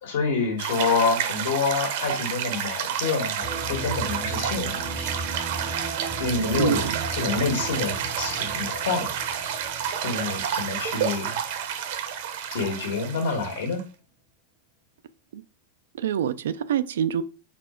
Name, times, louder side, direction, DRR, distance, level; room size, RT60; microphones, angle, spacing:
voice 1, 0.0-5.1 6.2-6.8 7.1-9.1 10.0-11.4 12.5-13.8, left 4 dB, 75° left, 1.7 m, -27 dB
sound 1, 0.6-13.8, right 8 dB, 55° right, 0.7 m, -30 dB
sound 2, 3.4-11.6, right 2 dB, 15° right, 0.6 m, -36 dB
voice 2, 6.5-7.0 15.3-15.4 15.9-17.2, right 9 dB, 90° right, 0.4 m, -26 dB
4.2 x 2.5 x 4.4 m
supercardioid pair, 165°, 0 cm